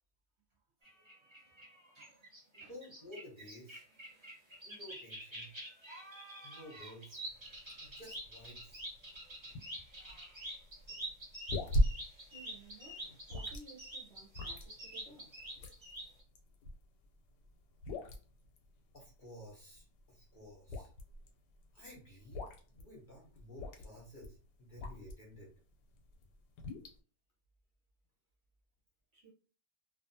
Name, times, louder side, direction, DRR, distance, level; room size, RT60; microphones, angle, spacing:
sound 1, 0.8-16.2, right 1 dB, 35° right, 0.4 m, -47 dB
voice 1, 2.5-3.8 4.6-5.5 6.4-7.2 7.8-8.8 18.9-20.9 21.7-22.5 22.7-25.5, equal, 45° left, 0.7 m, -53 dB
sound 2, 7.3-25.4 25.8-27.0, equal, 90° left, 1.2 m, -40 dB
voice 2, 9.4-9.9 12.3-15.3 29.1-29.3, right 4 dB, 55° right, 0.8 m, -58 dB
2.6 x 2.4 x 2.6 m
omnidirectional pair, 1.8 m